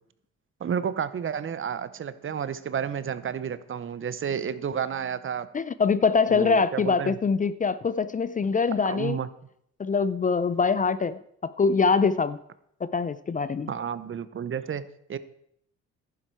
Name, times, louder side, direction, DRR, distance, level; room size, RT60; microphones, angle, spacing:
voice 1, 0.6-5.5 6.3-7.2 8.9-9.3 13.7-15.2, right 8 dB, 45° right, 14 dB, 0.8 m, -31 dB
voice 2, 5.5-9.2 9.8-12.4 12.9-13.7, left 5 dB, 25° left, 15 dB, 0.4 m, -24 dB
11.0 x 10.0 x 4.6 m, 0.71 s
cardioid pair, 90°, 30 cm